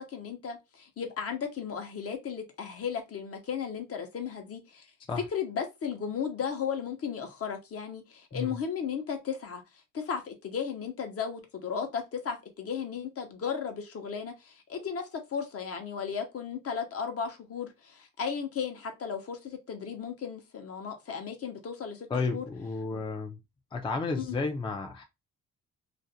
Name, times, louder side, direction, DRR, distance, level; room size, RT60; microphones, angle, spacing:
voice 1, 0.0-4.9 5.3-9.6 9.9-22.5 22.9-23.0 24.1-24.4, left 7 dB, 50° left, 0.7 m, -35 dB
voice 2, 22.1-23.4 23.7-25.0, left 4 dB, 15° left, 0.4 m, -32 dB
2.5 x 2.1 x 2.7 m
cardioid pair, 90°, 30 cm